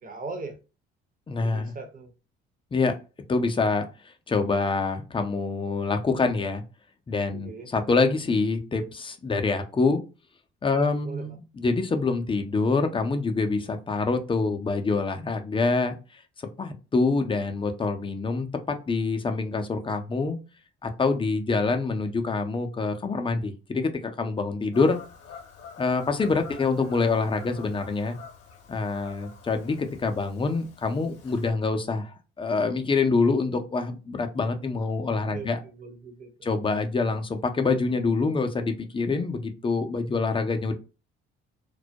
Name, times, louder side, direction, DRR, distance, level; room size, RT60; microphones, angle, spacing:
voice 1, 0.0-0.6 1.4-2.1 7.3-7.7 10.7-11.4 35.1-36.3, right 3 dB, 30° right, 0.7 m, -39 dB
voice 2, 1.3-1.7 2.7-3.0 3.3-6.6 7.1-10.0 10.6-16.2 16.6-20.4 20.8-25.0 25.8-28.2 28.7-35.6 36.4-40.8, left 4 dB, 20° left, 0.4 m, -26 dB
Fowl / Bird vocalization bird call bird song, 24.7-31.5, left 6 dB, 55° left, 0.7 m, -46 dB
2.2 x 2.0 x 2.7 m
hypercardioid pair, 55°, 29 cm